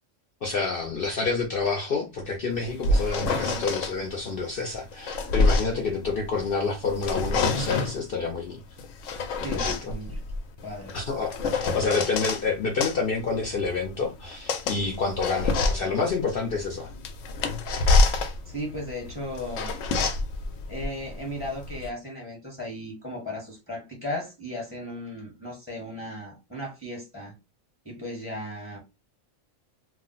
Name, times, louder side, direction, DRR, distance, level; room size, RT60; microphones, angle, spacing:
voice 1, 0.4-8.6 9.5-9.9 10.9-16.9, left 4 dB, 55° left, 0.7 m, -28 dB
sound 1, 2.5-3.9 4.7-6.5 6.9-8.0 8.8-12.4 12.8-21.9, left 3 dB, 85° left, 1.0 m, -27 dB
voice 2, 3.3-3.7 5.7-5.9 9.4-10.2 10.6-11.0 18.5-19.7 20.7-27.3 27.8-28.8, left 1 dB, 10° left, 0.9 m, -36 dB
2.4 x 2.1 x 3.8 m
omnidirectional pair, 1.3 m